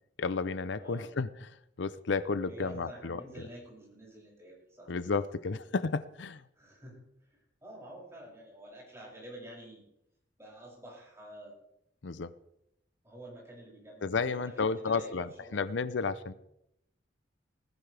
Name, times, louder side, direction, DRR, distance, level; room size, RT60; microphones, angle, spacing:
voice 1, 0.2-1.5 1.8-3.2 4.9-6.4 12.0-12.3 14.0-16.3, left 4 dB, 80° left, 15 dB, 0.6 m, -32 dB
voice 2, 0.8-1.1 2.5-4.9 6.6-9.8 10.4-11.5 13.0-15.6 16.2-16.4, right 1 dB, 15° right, -4 dB, 7.3 m, -49 dB
20.0 x 14.5 x 3.4 m, 0.80 s
head